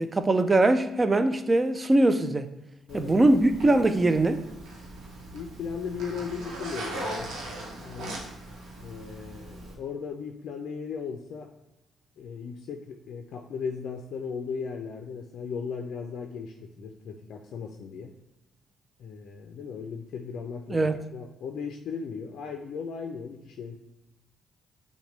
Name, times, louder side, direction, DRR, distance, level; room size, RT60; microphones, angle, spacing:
voice 1, 0.0-2.5 2.9-4.5 20.7-21.0, right 2 dB, 25° right, 0.3 m, -22 dB
Zipper (clothing), 2.9-9.7, right 1 dB, 80° right, 0.9 m, -39 dB
voice 2, 5.3-7.3 7.8-8.2 8.8-11.5 12.2-18.1 19.0-23.8, left 6 dB, 70° left, 0.4 m, -37 dB
5.8 x 2.2 x 3.1 m
cardioid pair, 90°, 0 cm